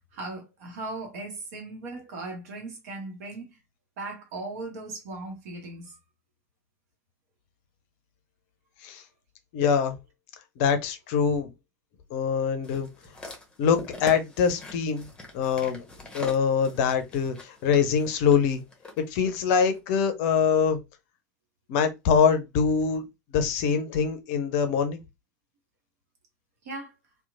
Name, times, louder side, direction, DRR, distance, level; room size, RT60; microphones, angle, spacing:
voice 1, 0.1-3.6 4.0-6.0 26.6-26.9, right 2 dB, 60° right, 1.0 m, -38 dB
voice 2, 9.5-9.9 10.6-11.5 12.1-12.9 13.6-15.1 15.3-15.8 16.1-18.6 19.1-20.8 21.7-23.0 23.3-25.0, left 6 dB, 50° left, 0.5 m, -24 dB
sound 1, 12.6-19.0 19.7-19.8, left 2 dB, 10° left, 0.9 m, -43 dB
2.9 x 2.2 x 2.4 m
figure-of-eight pair, 75°, 9 cm